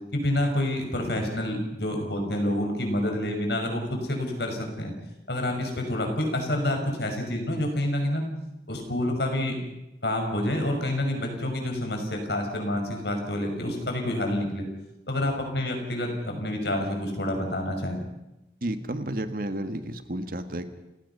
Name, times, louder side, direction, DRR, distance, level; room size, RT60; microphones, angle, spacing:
voice 1, 0.1-4.9 5.3-8.2 8.7-9.6 10.0-14.7 15.1-18.0, left 1 dB, 70° left, 3 dB, 5.8 m, -28 dB
voice 2, 18.6-20.7, right 1 dB, 50° right, 8 dB, 1.7 m, -31 dB
30.0 x 18.5 x 5.6 m, 0.96 s
head